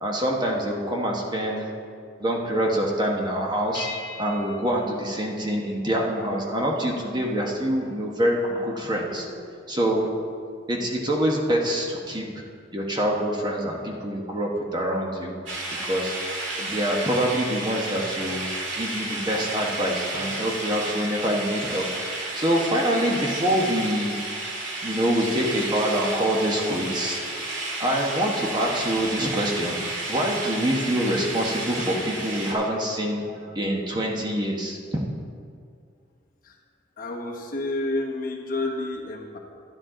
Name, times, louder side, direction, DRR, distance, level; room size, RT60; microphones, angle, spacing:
voice 1, 0.0-3.9 4.2-9.3 9.7-10.1 10.7-12.3 12.7-15.4 15.8-16.1 16.6-21.9 22.4-24.2 24.8-27.5 27.8-34.8, equal, 25° right, -1 dB, 1.2 m, -25 dB
sound 1, 3.7-6.0, left 4 dB, 80° left, 1.6 m, -40 dB
sound 2, 15.5-32.5, right 2 dB, 80° right, 2.1 m, -32 dB
voice 2, 37.0-39.4, left 2 dB, 50° left, -1 dB, 1.3 m, -29 dB
12.5 x 9.6 x 3.8 m, 2.3 s
head